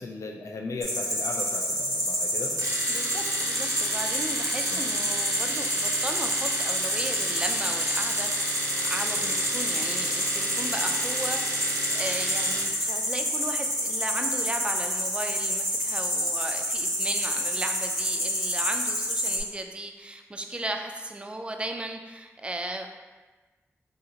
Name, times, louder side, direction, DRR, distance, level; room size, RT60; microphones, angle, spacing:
voice 1, 0.0-2.5 4.7-4.8 9.1-9.3, left 3 dB, 80° left, 2 dB, 0.3 m, -37 dB
sound 1, 0.8-19.4, equal, ahead, 0.9 m, -28 dB
Domestic sounds home sounds, 2.6-12.8, right 2 dB, 90° right, 0.5 m, -33 dB
voice 2, 2.9-22.9, right 1 dB, 20° right, 4 dB, 0.3 m, -36 dB
2.7 x 2.5 x 3.8 m, 1.3 s
wide cardioid pair, 65°, 5 cm